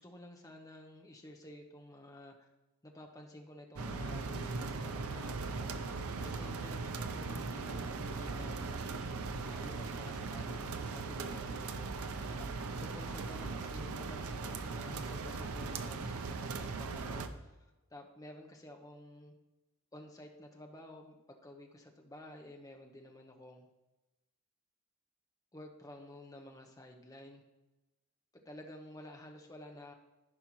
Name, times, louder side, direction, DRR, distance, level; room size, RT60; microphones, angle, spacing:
voice 1, 0.0-2.5 2.8-5.7 6.2-8.8 9.4-11.9 12.3-17.6 17.9-19.3 19.9-23.7 25.5-27.4 28.3-29.9, left 1 dB, 15° left, 2 dB, 0.7 m, -52 dB
sound 1, 3.8-17.3, right 4 dB, 80° right, 0.6 m, -39 dB
14.5 x 5.5 x 3.1 m, 1.1 s
head